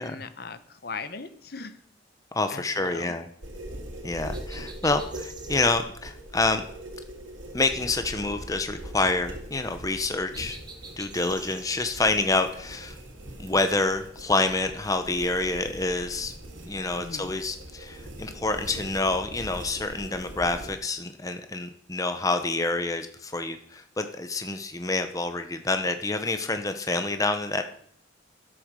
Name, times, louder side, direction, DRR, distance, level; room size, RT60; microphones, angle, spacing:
voice 1, 0.0-1.8 2.5-3.2 17.0-17.3, left 4 dB, 50° left, 12 dB, 0.9 m, -39 dB
voice 2, 2.3-3.3 4.0-6.6 7.5-10.6 11.0-13.0 13.4-16.3 16.7-27.6, left 3 dB, 15° left, 8 dB, 0.7 m, -27 dB
sound 1, 3.4-20.8, right 1 dB, 75° right, 2.5 m, -41 dB
sound 2, 4.3-5.7 10.3-11.7, right 4 dB, 20° right, 1.6 m, -45 dB
12.5 x 8.0 x 6.7 m, 0.66 s
head